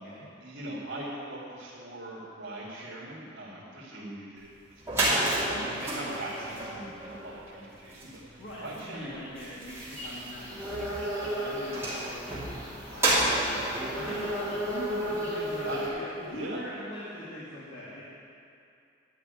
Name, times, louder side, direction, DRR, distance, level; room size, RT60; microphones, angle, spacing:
voice 1, 0.4-9.1 13.7-14.1 15.6-15.8 16.3-16.6, right 1 dB, 70° right, -9 dB, 2.6 m, -41 dB
sound 1, 4.5-4.6 4.8-15.5, right 1 dB, 15° right, 2.8 m, -32 dB
voice 2, 5.5-6.8 8.4-18.0, left 1 dB, 60° left, -7 dB, 1.9 m, -42 dB
sound 2, 9.6-15.9, equal, 10° left, 2.6 m, -35 dB
11.5 x 5.8 x 9.1 m, 2.5 s
head